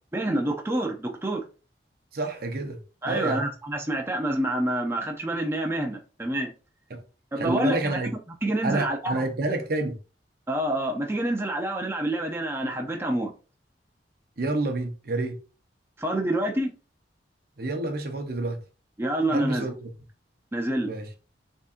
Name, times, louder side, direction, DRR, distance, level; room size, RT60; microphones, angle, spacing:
voice 1, 0.1-1.4 3.0-6.5 7.3-8.0 8.4-9.2 10.5-13.3 16.0-16.7 19.0-19.6 20.5-20.9, right 1 dB, 15° right, 0.6 m, -27 dB
voice 2, 2.1-2.8 3.1-3.5 6.9-7.0 7.4-8.1 8.6-10.0 14.4-15.4 17.6-18.6 19.3-19.9 20.9-21.1, right 2 dB, 55° right, 0.7 m, -28 dB
4.1 x 3.7 x 2.5 m
head